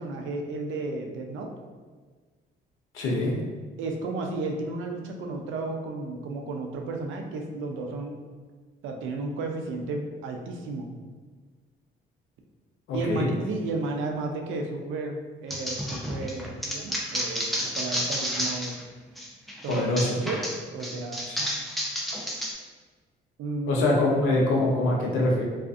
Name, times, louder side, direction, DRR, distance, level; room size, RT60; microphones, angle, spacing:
voice 1, 0.0-1.5 3.8-8.1 8.8-10.9 12.9-18.7 19.6-19.8 20.2-20.4 20.7-21.2 23.4-23.8, right 3 dB, 85° right, 3 dB, 0.4 m, -33 dB
voice 2, 2.9-3.3 12.9-13.3 19.7-20.1 23.7-25.4, left 2 dB, 85° left, -1 dB, 0.6 m, -24 dB
sound 1, 15.5-18.8 19.2-22.5, equal, ahead, 0.4 m, -31 dB
2.4 x 2.4 x 2.4 m, 1.4 s
cardioid pair, 90°, 20 cm